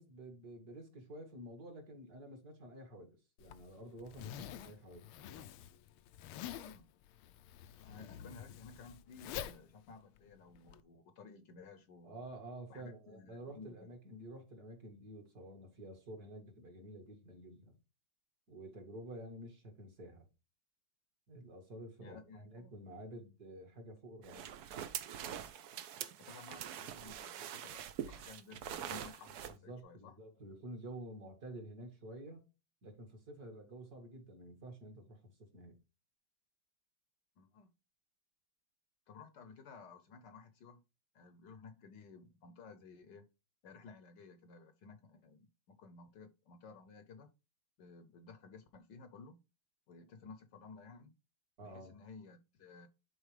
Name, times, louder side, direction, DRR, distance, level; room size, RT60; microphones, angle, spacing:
voice 1, 0.0-5.5 12.0-17.8 18.5-20.3 21.3-24.5 29.5-32.4 32.8-35.8 51.6-52.0, right 1 dB, 45° right, 2.3 m, -50 dB
Zipper (clothing), 3.4-10.8, left 10 dB, 85° left, 1.5 m, -48 dB
voice 2, 6.5-6.9 7.8-12.1 12.7-13.9 22.0-22.7 24.3-24.4 26.2-30.1 37.4-37.7 39.1-40.8 41.1-43.3 43.6-47.3 47.8-49.4 49.9-51.1 51.6-52.9, left 4 dB, 65° left, 1.2 m, -55 dB
sound 1, 24.2-29.5, right 9 dB, 70° right, 0.9 m, -44 dB
11.0 x 4.2 x 3.3 m
omnidirectional pair, 2.3 m